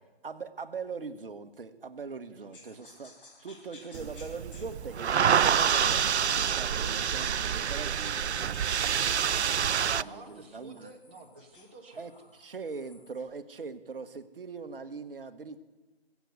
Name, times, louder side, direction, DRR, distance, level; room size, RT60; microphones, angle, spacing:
voice 1, 0.2-3.1 3.4-8.4 8.9-10.9 12.0-15.6, right 4 dB, 55° right, 10 dB, 1.1 m, -41 dB
voice 2, 2.3-2.8 9.0-12.3, right 3 dB, 10° right, 1 dB, 0.8 m, -52 dB
sound 1, 2.5-7.8 8.0-13.3, left 3 dB, 55° left, 3.8 m, -56 dB
sound 2, 3.9-10.0, right 8 dB, 90° right, 0.5 m, -27 dB
Bowed string instrument, 5.1-9.3, right 3 dB, 75° left, 7.0 m, -54 dB
20.0 x 8.3 x 7.8 m, 1.3 s
figure-of-eight pair, 155°, 32 cm